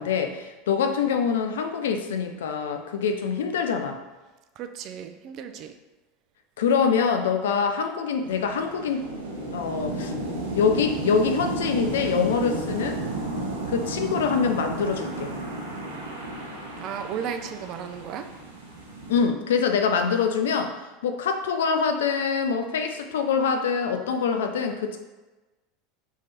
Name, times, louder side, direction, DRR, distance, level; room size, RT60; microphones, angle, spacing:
voice 1, 0.0-4.0 6.6-9.1 9.5-10.1 10.5-13.0 13.7-15.3 19.1-20.7 21.0-25.0, left 6 dB, 75° left, 6 dB, 0.5 m, -24 dB
voice 2, 4.6-5.7 16.8-18.3, right 8 dB, 50° right, 7 dB, 0.4 m, -34 dB
sound 1, 8.2-19.3, right 2 dB, 85° right, 0.9 m, -33 dB
3.6 x 3.2 x 4.2 m, 1.1 s
hypercardioid pair, 85°, 0 cm